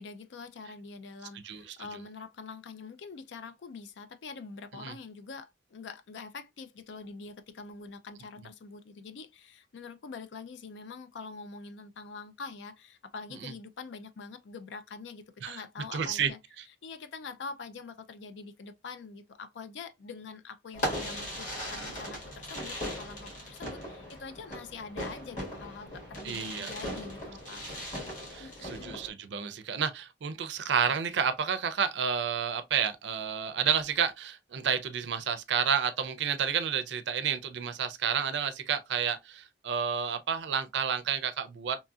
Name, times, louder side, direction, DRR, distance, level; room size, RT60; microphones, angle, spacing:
voice 1, 0.0-16.4 16.8-27.6 28.4-29.0, left 4 dB, 75° left, 0.4 m, -45 dB
voice 2, 1.4-2.0 4.8-4.9 13.4-13.5 15.4-15.6 15.9-16.3 26.2-26.7 27.6-27.8 28.3-41.8, right 7 dB, 70° right, 0.4 m, -30 dB
Fireworks, 20.7-29.1, equal, 45° left, 1.4 m, -38 dB
2.9 x 2.6 x 2.3 m
head